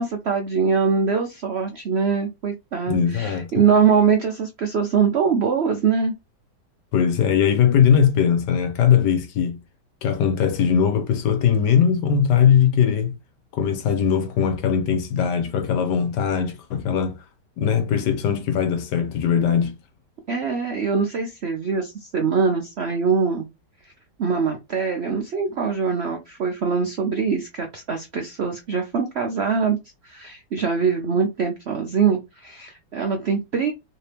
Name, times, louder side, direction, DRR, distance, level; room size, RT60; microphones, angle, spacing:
voice 1, 0.0-6.1 20.3-23.4 24.2-29.8 30.0-33.7, right 6 dB, 75° right, 0.6 m, -23 dB
voice 2, 2.9-3.6 6.9-9.6 10.0-13.1 13.5-17.1 17.6-19.7, left 8 dB, 80° left, 1.4 m, -20 dB
3.3 x 2.8 x 3.3 m
omnidirectional pair, 1.8 m